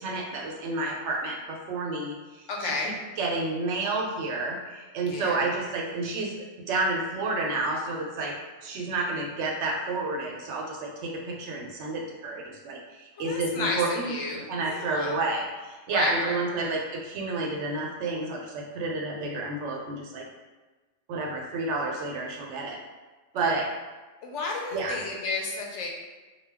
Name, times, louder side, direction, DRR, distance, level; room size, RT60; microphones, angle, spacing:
voice 1, 0.0-2.7 3.2-6.3 6.7-8.3 8.6-14.1 14.5-20.2 21.1-22.8 23.3-23.7 24.7-25.0, right 2 dB, 75° right, -1 dB, 0.9 m, -30 dB
voice 2, 2.5-3.0 5.0-5.5 13.2-15.1 15.9-16.7 24.2-25.9, left 3 dB, 85° left, -1 dB, 0.9 m, -32 dB
2.3 x 2.2 x 3.4 m, 1.2 s
omnidirectional pair, 1.2 m